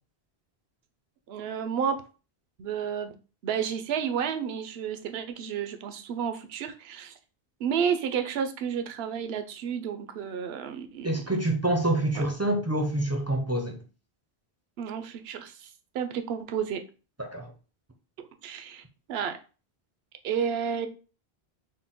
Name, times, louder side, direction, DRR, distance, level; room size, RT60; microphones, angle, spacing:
voice 1, 1.3-2.0 2.6-3.2 3.4-7.2 7.6-11.2 14.8-15.7 15.9-16.8 18.2-18.8 19.1-19.4 20.2-20.9, right 7 dB, 80° right, 0.8 m, -31 dB
voice 2, 11.0-13.8 17.2-17.5, right 1 dB, 20° right, 0.4 m, -27 dB
4.2 x 2.1 x 3.6 m
omnidirectional pair, 1.1 m